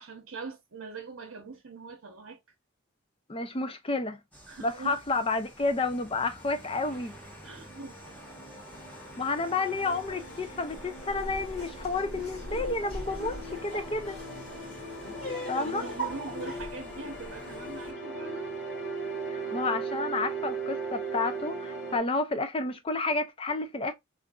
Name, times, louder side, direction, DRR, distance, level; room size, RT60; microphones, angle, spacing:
voice 1, 0.0-2.4 4.5-5.0 7.4-8.0 15.6-18.5, right 4 dB, 80° right, 0.7 m, -42 dB
voice 2, 3.3-4.2 4.6-7.1 9.2-14.2 15.5-15.8 19.3-23.9, left 3 dB, 25° left, 0.5 m, -30 dB
sound 1, 4.3-17.9, right 1 dB, 5° left, 0.8 m, -46 dB
sound 2, 5.8-22.0, right 3 dB, 55° left, 1.2 m, -39 dB
Laughter, 9.8-16.7, right 2 dB, 75° left, 2.0 m, -42 dB
3.6 x 2.6 x 2.3 m
head